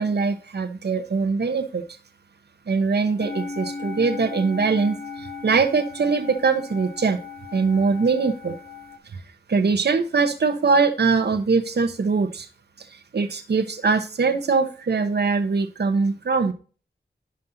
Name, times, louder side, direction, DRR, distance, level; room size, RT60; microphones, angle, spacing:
voice 1, 0.0-1.8 2.7-7.2 7.5-8.6 9.1-9.2 9.5-12.5 12.8-16.5, right 4 dB, 70° right, 8 dB, 1.1 m, -22 dB
sound 1, 3.2-9.0, left 4 dB, 60° left, 2.5 m, -36 dB
11.5 x 5.4 x 4.0 m, 0.36 s
wide cardioid pair, 70°, 18 cm